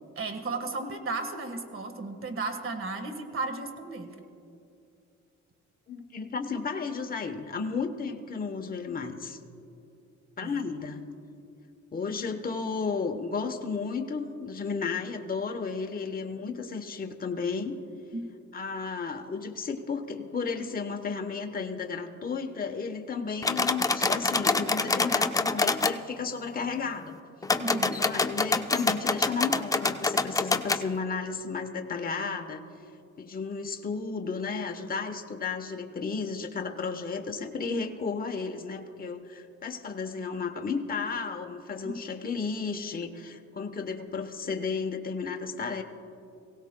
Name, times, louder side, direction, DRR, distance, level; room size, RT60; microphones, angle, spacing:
voice 1, 0.2-4.1 10.4-10.6 18.1-18.2 27.5-27.9 41.8-41.9, right 3 dB, 45° right, 7 dB, 1.5 m, -34 dB
voice 2, 5.9-9.4 10.4-11.1 11.9-17.8 18.5-27.2 27.9-32.6 33.2-45.8, left 5 dB, 30° left, 5 dB, 1.0 m, -33 dB
sound 1, 23.4-26.0 27.4-30.8, left 3 dB, 10° left, 0.5 m, -26 dB
23.0 x 17.0 x 2.2 m, 2.6 s
cardioid pair, 90°, 30 cm